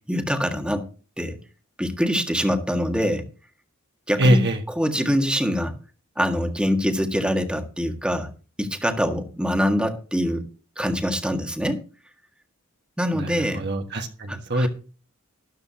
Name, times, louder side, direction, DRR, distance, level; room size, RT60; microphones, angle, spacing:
voice 1, 0.1-0.9 1.2-1.4 1.8-3.3 4.1-5.8 6.2-8.3 8.6-10.5 10.8-11.8 13.0-13.6 14.3-14.7, equal, 5° right, 5 dB, 1.7 m, -24 dB
voice 2, 4.2-4.6 13.1-13.2 13.6-14.7, equal, 55° right, 4 dB, 1.5 m, -22 dB
13.0 x 12.0 x 2.9 m, 0.37 s
head